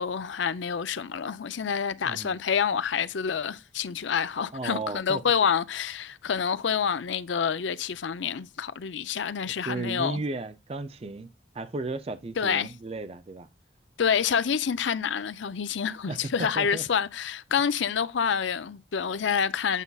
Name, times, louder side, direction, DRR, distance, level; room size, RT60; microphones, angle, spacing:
voice 1, 0.0-10.2 12.4-12.7 14.0-19.8, left 7 dB, 80° left, 0.5 m, -27 dB
voice 2, 2.0-2.4 4.5-5.2 9.4-11.3 11.5-13.5 16.1-16.8, right 2 dB, 30° right, 0.4 m, -35 dB
8.1 x 5.4 x 2.3 m
head